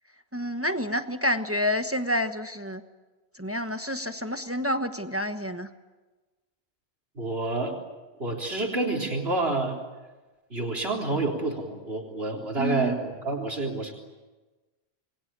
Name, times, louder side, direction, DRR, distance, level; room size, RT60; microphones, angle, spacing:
voice 1, 0.3-2.8 3.3-5.7 12.6-13.0, left 1 dB, 15° right, 7 dB, 1.2 m, -28 dB
voice 2, 7.2-7.7 8.2-9.8 10.5-13.9, right 2 dB, 70° right, 4 dB, 4.0 m, -28 dB
28.5 x 22.0 x 8.8 m, 1.2 s
omnidirectional pair, 1.1 m